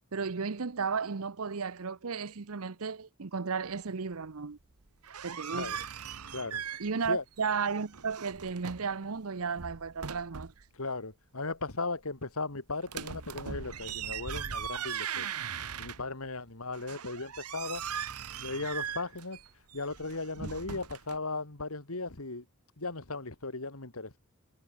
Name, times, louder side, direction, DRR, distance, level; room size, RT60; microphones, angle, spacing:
voice 1, 0.1-4.6 5.2-5.7 6.8-10.5, right 5 dB, 70° right, 0.8 m, -34 dB
sound 1, 4.9-7.1 7.4-8.9 9.4-10.6 12.9-16.3 16.7-21.2, right 7 dB, 90° right, 1.2 m, -39 dB
voice 2, 6.3-6.7 7.0-7.2 10.7-15.3 15.8-17.9 18.4-19.4 19.7-22.5 22.8-24.2, left 3 dB, 70° left, 2.5 m, -37 dB
head